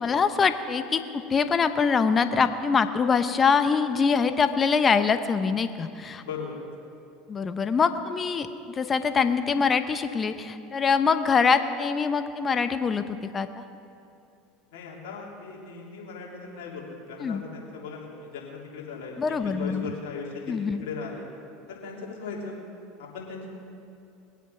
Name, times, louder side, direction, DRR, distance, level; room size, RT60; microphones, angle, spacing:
voice 1, 0.0-6.2 7.3-13.6 17.2-17.4 19.2-19.9 20.5-20.8, left 5 dB, 30° left, 10 dB, 0.9 m, -24 dB
voice 2, 6.2-6.6 14.7-21.3 21.7-22.6 23.0-23.5, left 5 dB, 75° left, -3 dB, 3.3 m, -38 dB
21.5 x 8.2 x 5.8 m, 2.7 s
hypercardioid pair, 90°, 0 cm